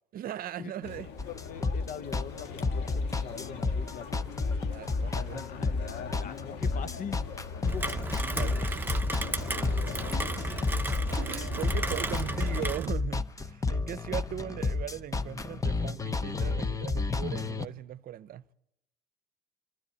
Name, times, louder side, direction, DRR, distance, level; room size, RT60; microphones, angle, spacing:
voice 1, 0.1-1.3 4.7-5.5 8.4-9.2 11.2-18.5, right 11 dB, 60° right, 0.7 m, -39 dB
sound 1, 0.8-12.7, left 6 dB, 80° left, 1.7 m, -41 dB
voice 2, 1.2-4.3 5.4-7.3 7.6-7.9 8.5-8.8, left 7 dB, 55° left, 0.7 m, -43 dB
sound 2, 1.2-17.7, left 3 dB, 20° left, 0.8 m, -31 dB
Rain, 7.7-12.9, right 2 dB, 10° right, 0.8 m, -34 dB
25.5 x 12.5 x 9.9 m
cardioid pair, 110°, 17 cm